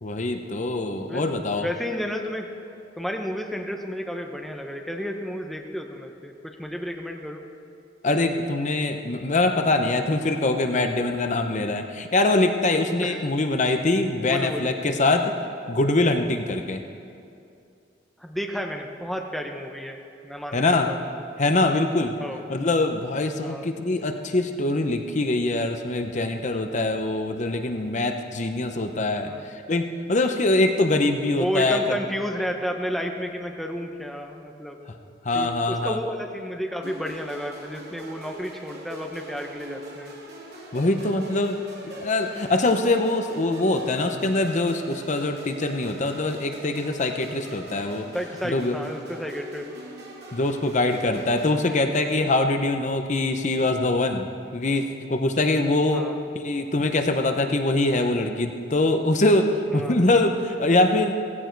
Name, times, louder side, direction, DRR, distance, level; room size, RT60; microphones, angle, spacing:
voice 1, 0.0-1.7 8.0-15.3 15.7-16.8 20.5-20.9 21.4-22.2 22.5-29.3 29.7-32.0 35.2-36.0 40.7-48.1 48.4-48.8 50.3-54.3 54.5-56.1 56.3-61.1, left 2 dB, 40° left, 6 dB, 0.8 m, -23 dB
voice 2, 1.1-2.5 3.0-7.4 13.0-13.3 14.2-14.7 18.2-21.0 22.2-22.4 23.4-23.7 29.3-29.4 31.3-34.8 35.3-40.2 47.3-47.4 48.1-49.7 55.9-56.2 59.7-60.0, equal, ahead, 2 dB, 0.9 m, -32 dB
sound 1, 36.8-51.6, right 2 dB, 60° right, 3.2 m, -42 dB
16.5 x 16.0 x 4.6 m, 2.5 s
head